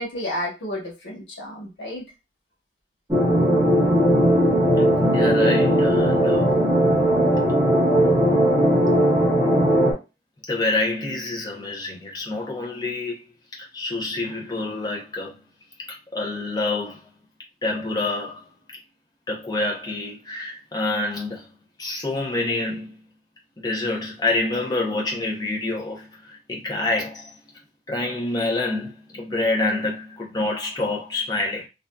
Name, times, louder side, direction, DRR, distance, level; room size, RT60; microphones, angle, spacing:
voice 1, 0.0-2.0, left 1 dB, 85° left, 1.2 m, -31 dB
sound 1, 3.1-9.9, equal, 15° right, 0.9 m, -18 dB
voice 2, 5.1-6.5 8.8-9.0 10.5-13.3 13.5-15.3 15.9-17.0 17.6-18.4 19.3-21.5 21.8-22.9 23.6-27.3 27.9-31.7, left 2 dB, 20° left, 0.6 m, -27 dB
2.6 x 2.3 x 2.2 m
head